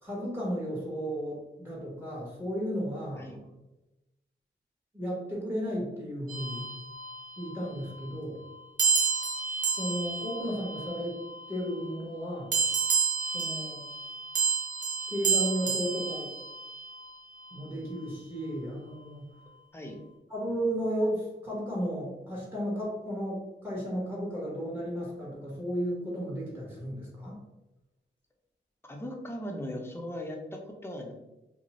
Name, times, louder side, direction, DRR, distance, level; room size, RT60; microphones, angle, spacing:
voice 1, 0.0-3.3 4.9-6.6 7.4-8.4 9.8-11.2 11.5-12.5 13.3-13.8 15.1-16.3 17.5-19.3 20.3-27.4, equal, 10° right, -4 dB, 1.1 m, -34 dB
sound 1, 6.3-7.5 8.8-11.5 12.5-17.0, right 5 dB, 40° right, 0.6 m, -30 dB
voice 2, 28.8-31.1, left 1 dB, 10° left, 1 dB, 0.6 m, -38 dB
2.5 x 2.0 x 3.0 m, 1.0 s
cardioid pair, 45°, 20 cm